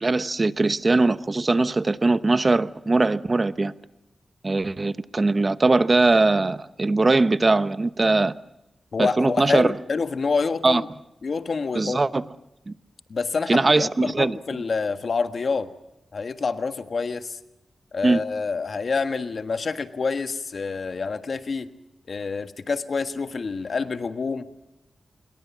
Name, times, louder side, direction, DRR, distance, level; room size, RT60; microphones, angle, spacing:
voice 1, 0.0-3.7 4.4-8.3 9.0-9.7 10.6-10.8 11.7-12.2 12.7-12.8 13.5-14.6 18.0-18.2, right 3 dB, 35° right, 0.9 m, -21 dB
voice 2, 8.9-10.9 11.2-12.0 13.1-15.7 16.1-17.4 17.9-21.7 22.1-24.5, left 4 dB, 60° left, 1.5 m, -27 dB
28.0 x 22.0 x 7.3 m
cardioid pair, 65°, 0 cm